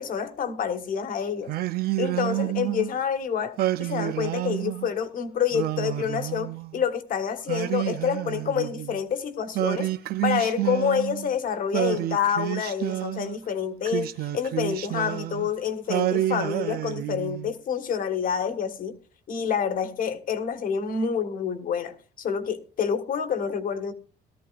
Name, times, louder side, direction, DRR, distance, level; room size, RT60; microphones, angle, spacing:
voice 1, 0.0-1.5 2.0-9.9 10.2-19.0 19.3-23.9, left 7 dB, 55° left, 1.5 m, -28 dB
Singing, 1.5-2.9 3.6-4.9 5.5-6.8 7.5-9.0 9.6-11.3 11.7-13.4 13.9-15.5 15.9-17.5, right 15 dB, 65° right, 0.6 m, -29 dB
18.0 x 13.0 x 2.5 m
cardioid pair, 110°, 17 cm